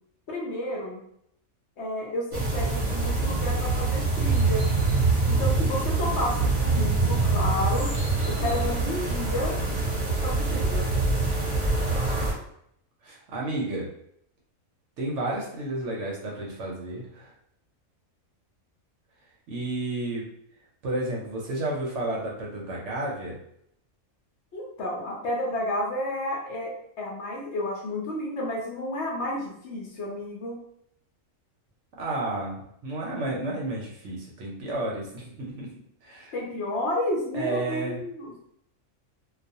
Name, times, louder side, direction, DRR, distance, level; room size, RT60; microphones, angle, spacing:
voice 1, 0.3-1.0 1.8-4.7 5.3-7.9 8.2-9.5 10.2-10.9 24.5-30.6 36.3-38.3, left 1 dB, 60° left, -3 dB, 0.8 m, -31 dB
sound 1, 2.3-12.3, right 3 dB, 40° right, 0.7 m, -25 dB
voice 2, 13.0-13.9 15.0-17.3 19.5-20.3 20.8-23.4 32.0-35.7 36.0-36.3 37.3-38.0, right 2 dB, 65° right, -2 dB, 0.8 m, -31 dB
2.3 x 2.2 x 2.6 m, 0.71 s
omnidirectional pair, 1.4 m